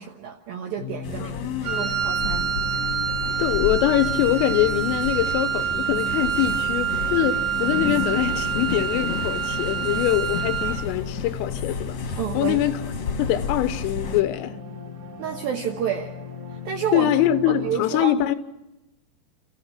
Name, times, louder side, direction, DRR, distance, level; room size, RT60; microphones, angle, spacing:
voice 1, 0.0-1.4 1.8-2.5 12.2-12.6 15.2-16.1 16.7-17.1 17.5-18.2, right 8 dB, 75° right, 2.2 m, -29 dB
sound 1, 0.8-17.8, left 6 dB, 30° right, 3.5 m, -37 dB
sound 2, 1.0-14.2, left 5 dB, 55° left, 2.1 m, -32 dB
voice 2, 1.2-2.0 3.4-12.0 12.4-12.8 13.2-14.6 16.9-18.4, left 12 dB, 90° left, 3.6 m, -23 dB
Wind instrument woodwind instrument, 1.6-10.9, right 9 dB, 60° right, 3.6 m, -27 dB
29.5 x 15.0 x 5.9 m
omnidirectional pair, 5.8 m